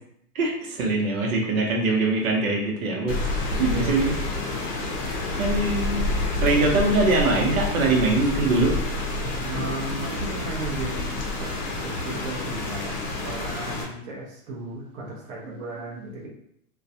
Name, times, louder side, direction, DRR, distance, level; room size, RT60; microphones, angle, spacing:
voice 1, 0.3-3.2 3.6-4.2 5.0-6.0 6.4-8.8, right 2 dB, 65° right, 0 dB, 0.8 m, -23 dB
Rain, 3.1-13.8, left 2 dB, 40° left, 0.7 m, -28 dB
voice 2, 3.5-3.9 9.2-16.3, right 2 dB, 30° right, -4 dB, 0.7 m, -35 dB
2.5 x 2.3 x 2.4 m, 0.73 s
hypercardioid pair, 125°, 45 cm